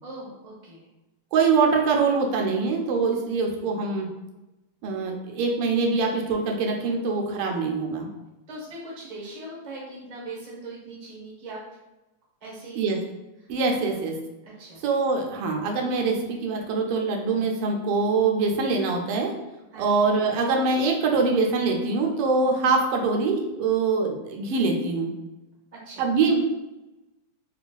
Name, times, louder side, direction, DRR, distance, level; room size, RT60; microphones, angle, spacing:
voice 1, 0.0-0.8 8.5-11.6 12.4-13.0 13.4-13.9 14.6-14.9 19.7-20.0 25.7-26.1, right 2 dB, 55° right, -5 dB, 0.4 m, -40 dB
voice 2, 1.3-4.1 4.8-8.1 12.8-13.0 13.5-14.1 14.8-19.3 19.8-25.1 26.0-26.4, right 4 dB, 90° right, 1 dB, 1.5 m, -24 dB
4.0 x 2.3 x 2.2 m, 1.0 s
omnidirectional pair, 2.4 m